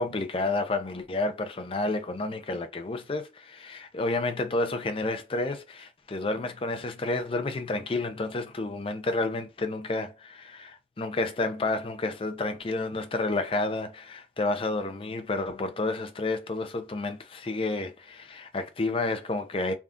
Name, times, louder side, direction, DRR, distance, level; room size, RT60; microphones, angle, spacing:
voice 1, 0.0-19.7, left 2 dB, 30° left, 0.4 m, -30 dB
3.5 x 2.3 x 2.4 m
head